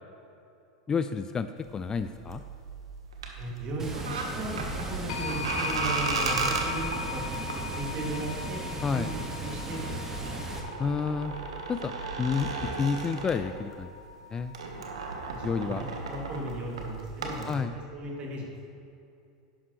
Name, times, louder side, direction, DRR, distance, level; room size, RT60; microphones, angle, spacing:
voice 1, 0.9-2.4 8.8-9.1 10.8-11.4 11.7-13.9 14.3-14.5 15.4-15.8 17.5-17.7, left 5 dB, 25° left, 10 dB, 0.4 m, -30 dB
sound 1, 1.6-14.0 14.2-17.5, right 4 dB, 80° right, 1.3 m, -36 dB
voice 2, 3.4-8.6 8.9-10.8 15.2-15.7 16.0-18.8, right 2 dB, 40° right, -1 dB, 2.5 m, -37 dB
Water, 3.8-10.6, right 1 dB, 15° right, 1.8 m, -37 dB
sound 2, 5.1-15.7, left 6 dB, 65° left, 0.8 m, -40 dB
11.0 x 11.0 x 3.2 m, 2.6 s
hypercardioid pair, 95°, 3 cm